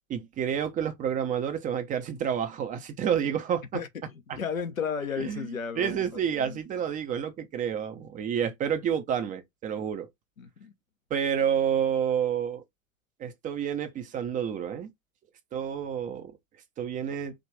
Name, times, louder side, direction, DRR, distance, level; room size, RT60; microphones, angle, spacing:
voice 1, 0.1-3.8 4.3-4.4 5.2-10.1 11.1-12.6 13.2-14.9 15.5-16.3 16.8-17.3, right 8 dB, 20° right, 0.6 m, -29 dB
voice 2, 3.7-6.0 6.4-6.6 10.4-10.7, left 6 dB, 75° left, 0.9 m, -34 dB
5.0 x 2.5 x 3.3 m
figure-of-eight pair, 90°, 41 cm